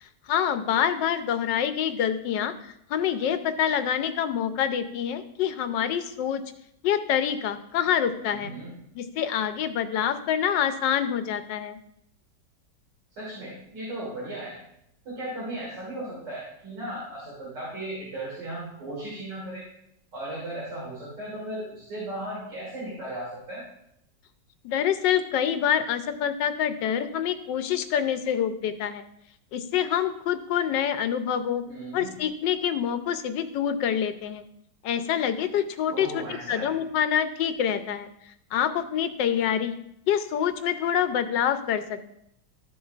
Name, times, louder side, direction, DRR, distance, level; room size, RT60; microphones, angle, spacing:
voice 1, 0.0-6.4 6.8-8.5 8.9-11.8 24.6-29.0 29.5-31.6 31.9-34.4 34.8-38.1 38.5-39.8 40.1-42.1, left 9 dB, 85° left, 10 dB, 1.3 m, -26 dB
voice 2, 8.3-8.7 13.2-14.6 15.0-19.6 20.1-23.6 31.7-32.2 35.9-36.7, right 1 dB, 75° right, -7 dB, 3.3 m, -36 dB
13.0 x 7.0 x 2.4 m, 0.76 s
omnidirectional pair, 1.9 m